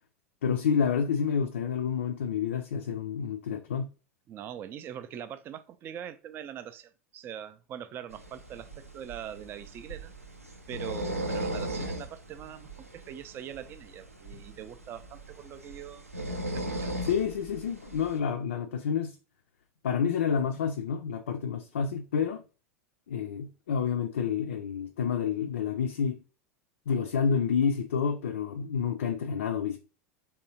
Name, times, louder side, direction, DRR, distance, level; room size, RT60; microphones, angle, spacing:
voice 1, 0.4-3.9 17.1-19.2 19.8-22.4 23.1-26.2 26.9-29.8, left 7 dB, 65° left, 0.3 m, -29 dB
voice 2, 4.3-10.1 10.7-16.1 16.5-17.0, right 9 dB, 30° right, 0.3 m, -42 dB
sound 1, 8.1-18.2, right 1 dB, 90° right, 0.5 m, -38 dB
3.5 x 2.7 x 2.8 m
figure-of-eight pair, 85°, 7 cm